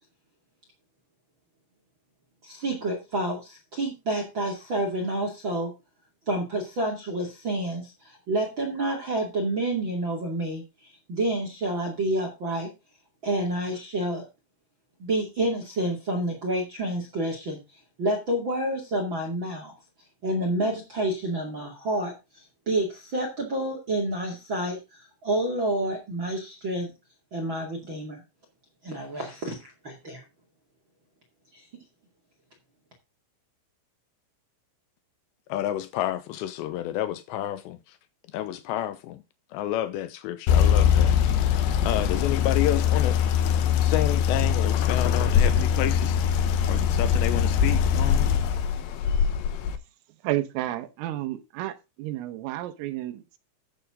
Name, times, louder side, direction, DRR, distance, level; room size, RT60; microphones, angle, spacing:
voice 1, 2.4-5.7 6.3-10.6 11.1-12.7 13.2-14.3 15.0-17.6 18.0-19.7 20.2-26.9 27.3-28.2 28.8-29.6 29.8-30.2 31.5-31.6, right 1 dB, 40° right, 1.8 m, -29 dB
voice 2, 35.5-38.0 38.3-39.2 39.5-41.2 41.8-43.2 43.8-48.3, left 13 dB, 90° left, 2.5 m, -30 dB
sound 1, 40.5-49.8, left 8 dB, 75° left, 2.6 m, -22 dB
voice 3, 50.2-53.4, right 15 dB, 80° right, 3.7 m, -31 dB
13.5 x 7.0 x 3.7 m
omnidirectional pair, 6.0 m